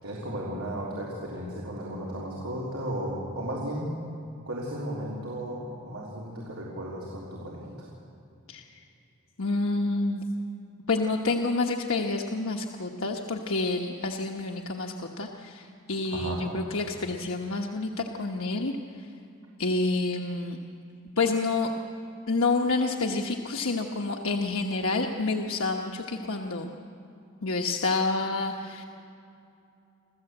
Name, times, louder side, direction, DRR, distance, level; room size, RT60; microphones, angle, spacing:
voice 1, 0.0-3.9 4.5-7.7 16.1-16.4, right 1 dB, 80° right, -4 dB, 3.6 m, -34 dB
voice 2, 9.4-10.2 10.9-18.8 19.6-20.6 21.2-21.7 22.3-26.7 27.4-28.8, left 3 dB, 65° left, 1 dB, 1.2 m, -28 dB
26.5 x 15.5 x 8.0 m, 2.6 s
head